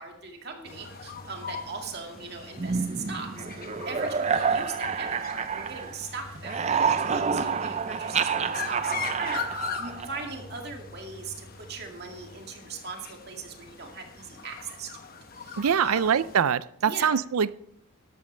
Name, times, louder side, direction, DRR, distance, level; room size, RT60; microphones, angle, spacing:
voice 1, 0.0-14.9 15.3-16.2 16.9-17.2, right 4 dB, 45° right, 2 dB, 2.1 m, -40 dB
sound 1, 0.6-16.4, left 5 dB, 40° left, 1.0 m, -41 dB
sound 2, 2.6-6.1 6.3-10.4, right 6 dB, 30° right, 0.4 m, -28 dB
voice 2, 15.6-17.5, right 7 dB, 85° right, 17 dB, 0.5 m, -24 dB
13.0 x 12.5 x 3.3 m, 0.69 s
head